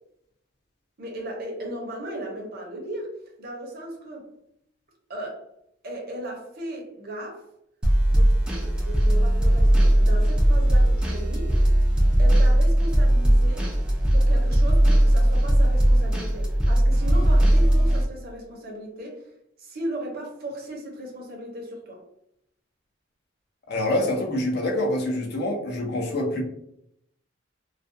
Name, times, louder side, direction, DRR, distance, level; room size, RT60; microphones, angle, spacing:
voice 1, 1.0-4.3 5.1-5.5 5.8-7.5 8.1-11.9 12.2-13.7 14.1-19.3 19.6-22.0, right 1 dB, 50° right, 0 dB, 0.7 m, -36 dB
sound 1, 7.8-18.0, right 1 dB, 5° right, 0.3 m, -19 dB
voice 2, 23.7-26.4, left 1 dB, 55° left, 1 dB, 0.5 m, -26 dB
2.3 x 2.2 x 2.6 m, 0.77 s
head